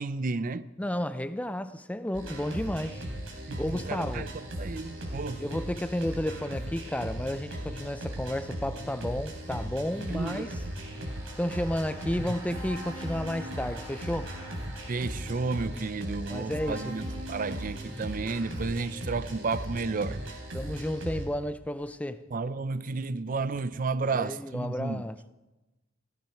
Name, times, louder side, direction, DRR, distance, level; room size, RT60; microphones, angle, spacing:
voice 1, 0.0-0.7 3.5-4.3 4.5-5.4 10.1-10.5 12.3-12.4 14.9-17.0 17.3-20.2 22.3-25.0, right 4 dB, 40° right, 0.5 m, -32 dB
voice 2, 0.8-3.0 3.6-4.3 5.4-10.6 11.4-14.3 16.3-16.9 20.5-22.2 24.0-25.3, left 1 dB, 5° left, 0.5 m, -32 dB
sound 1, 2.1-21.3, equal, 90° right, 3.9 m, -37 dB
sound 2, 10.1-16.3, right 1 dB, 15° right, 3.4 m, -50 dB
16.5 x 16.0 x 4.5 m
head